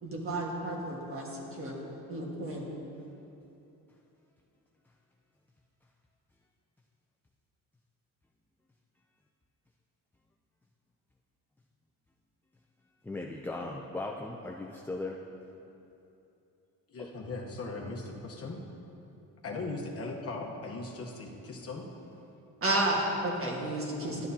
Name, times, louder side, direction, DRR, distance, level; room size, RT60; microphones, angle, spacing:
voice 1, 0.0-1.3 1.6-1.8 2.1-2.7 22.6-24.2, right 1 dB, 40° right, -2 dB, 1.5 m, -31 dB
voice 2, 13.0-15.2 17.0-17.1, left 2 dB, 5° left, 0 dB, 0.3 m, -37 dB
voice 3, 16.9-18.6 19.4-21.8 24.0-24.1, left 3 dB, 45° left, 0 dB, 1.0 m, -39 dB
11.5 x 11.0 x 2.8 m, 2.8 s
cardioid pair, 155°, 34 cm